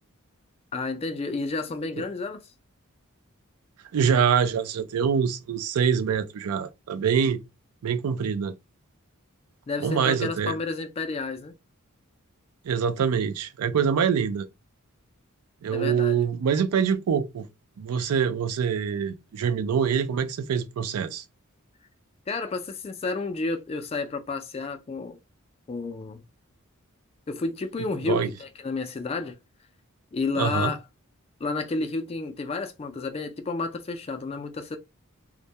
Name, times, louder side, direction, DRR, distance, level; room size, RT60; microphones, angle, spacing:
voice 1, 0.7-2.5 9.7-11.5 15.7-16.2 22.3-25.2 25.7-26.2 27.3-29.4 30.1-30.8 31.4-34.8, left 3 dB, 25° left, 0.3 m, -31 dB
voice 2, 3.9-7.4 7.8-8.5 9.8-10.6 12.6-14.5 15.6-17.5 17.8-21.2 28.0-28.3 30.4-30.7, right 7 dB, 90° right, 0.4 m, -25 dB
2.1 x 2.1 x 2.7 m
head